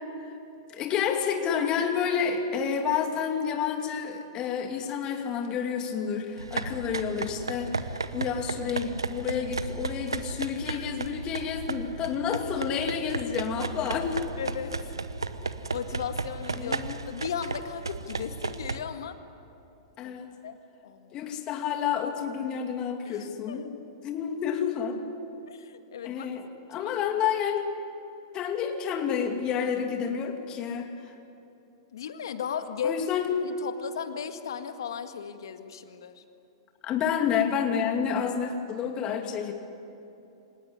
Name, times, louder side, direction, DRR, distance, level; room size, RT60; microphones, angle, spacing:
voice 1, 0.7-14.2 16.5-17.0 20.0-20.3 21.1-23.7 24.0-25.0 26.0-27.7 28.3-30.9 32.8-33.4 36.8-39.5, left 7 dB, 35° left, 4 dB, 2.7 m, -29 dB
sound 1, 6.4-18.8, right 3 dB, 90° right, 1.0 m, -34 dB
voice 2, 14.4-14.9 15.7-19.2 20.0-20.2 20.4-20.6 20.8-21.2 23.0-23.7 25.5-26.3 26.7-26.9 31.9-33.0 33.4-36.2, left 7 dB, 70° left, 8 dB, 1.8 m, -36 dB
25.5 x 19.5 x 9.8 m, 2.9 s
hypercardioid pair, 105°, 2 cm